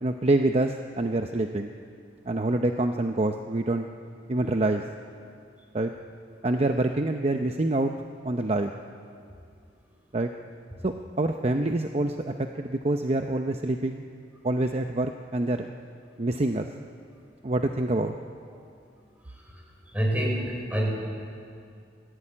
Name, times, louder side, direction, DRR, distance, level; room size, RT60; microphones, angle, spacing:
voice 1, 0.0-1.7 2.3-3.9 4.3-4.8 5.7-5.9 6.4-7.9 8.2-8.7 10.1-10.3 10.8-14.0 14.4-15.7 16.2-16.7 17.4-18.1, right 2 dB, 35° right, 5 dB, 0.7 m, -26 dB
voice 2, 19.3-19.6 19.9-20.9, right 1 dB, 10° right, -2 dB, 5.2 m, -28 dB
24.0 x 16.0 x 8.7 m, 2.3 s
head